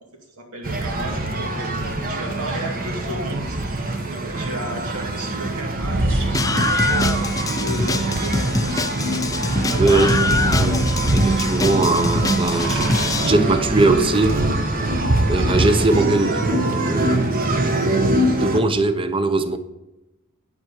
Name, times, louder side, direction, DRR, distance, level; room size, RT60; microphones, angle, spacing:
voice 1, 0.4-7.2 7.6-8.7 9.4-10.4, right 1 dB, 75° right, 2.3 m, -34 dB
sound 1, 0.6-18.6, right 1 dB, 40° right, 1.1 m, -23 dB
sound 2, 6.0-15.3, right 2 dB, 60° right, 2.1 m, -37 dB
Screaming, 6.3-13.3, left 3 dB, 15° left, 0.4 m, -24 dB
voice 2, 9.8-10.8 11.1-12.8 13.2-14.4 15.3-16.4 16.9-17.3 18.4-19.6, right 2 dB, 25° right, 0.7 m, -20 dB
10.5 x 4.7 x 6.7 m
head